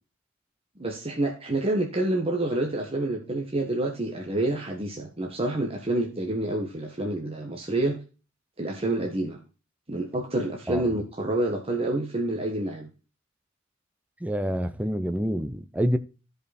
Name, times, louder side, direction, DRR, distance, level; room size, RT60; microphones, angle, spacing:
voice 1, 0.8-8.0 8.6-9.4 9.9-12.9, right 1 dB, 30° right, 1.3 m, -28 dB
voice 2, 14.2-16.0, equal, 5° right, 0.7 m, -27 dB
13.5 x 5.4 x 4.2 m
head